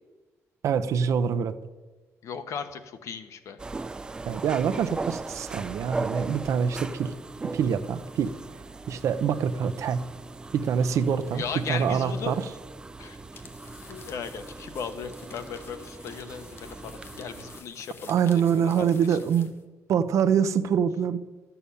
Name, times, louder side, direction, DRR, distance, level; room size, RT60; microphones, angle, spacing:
voice 1, 0.6-1.6 4.3-7.1 7.5-8.3 8.9-10.0 10.5-12.5 18.1-19.5 19.9-21.2, right 7 dB, 65° right, 10 dB, 0.8 m, -25 dB
voice 2, 2.2-3.6 11.3-12.4 13.0-13.2 13.9-19.2, left 6 dB, 65° left, 8 dB, 1.2 m, -37 dB
sound 1, 3.6-17.6, right 3 dB, 15° right, 0.3 m, -39 dB
sound 2, 13.3-19.6, left 5 dB, 45° left, 1.2 m, -50 dB
13.0 x 7.0 x 8.5 m, 1.2 s
cardioid pair, 165°, 6 cm